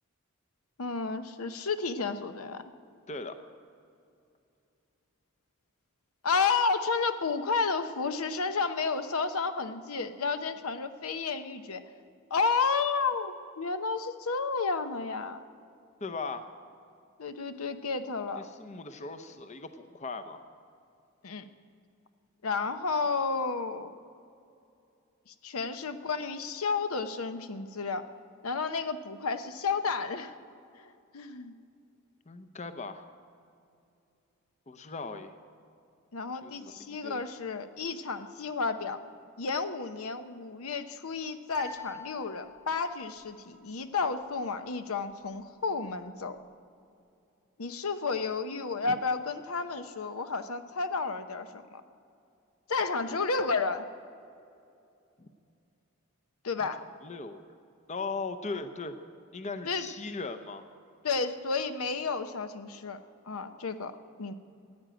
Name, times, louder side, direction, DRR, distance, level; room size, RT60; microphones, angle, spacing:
voice 1, 0.8-2.6 6.2-11.8 12.3-15.4 17.2-18.4 21.2-21.5 22.4-24.0 25.3-28.1 28.4-30.3 30.8-31.5 36.1-39.0 39.4-46.4 47.6-51.8 52.7-53.9 56.4-56.8 59.7-59.9 61.0-63.0 63.2-64.3, left 4 dB, 80° left, 10 dB, 0.8 m, -31 dB
voice 2, 3.1-3.4 16.0-16.5 18.4-20.4 32.3-33.1 34.7-35.4 36.4-37.2 48.9-49.0 53.1-53.2 55.2-55.3 56.6-57.4 57.9-58.9 59.3-60.7, left 4 dB, 30° left, 9 dB, 0.7 m, -39 dB
sound 1, 41.5-43.0, left 4 dB, 50° left, 2.7 m, -44 dB
15.0 x 9.2 x 8.8 m, 2.5 s
head